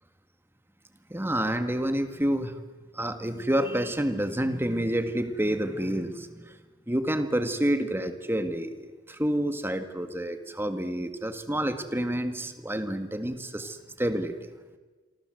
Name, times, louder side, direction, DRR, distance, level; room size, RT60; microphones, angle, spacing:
voice 1, 1.1-2.6 2.9-6.6 6.9-14.5, right 1 dB, 10° right, 9 dB, 1.8 m, -29 dB
27.5 x 24.0 x 7.9 m, 1.4 s
head